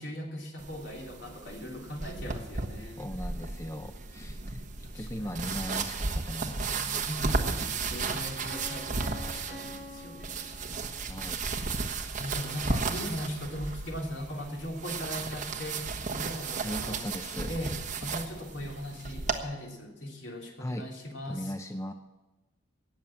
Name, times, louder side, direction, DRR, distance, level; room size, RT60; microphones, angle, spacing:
voice 1, 0.0-3.3 4.8-5.4 7.1-10.4 11.2-11.3 12.2-17.1 17.5-21.5, equal, 70° left, 0 dB, 3.1 m, -39 dB
sound 1, 0.6-19.4, right 4 dB, 40° right, 1.3 m, -34 dB
voice 2, 3.0-7.0 11.1-11.4 12.5-12.7 16.6-17.5 20.6-20.9 21.3-21.9, equal, 15° left, 7 dB, 0.6 m, -38 dB
Piano, 8.5-11.3, left 1 dB, 20° right, 5.4 m, -46 dB
19.0 x 7.2 x 7.5 m, 1.1 s
head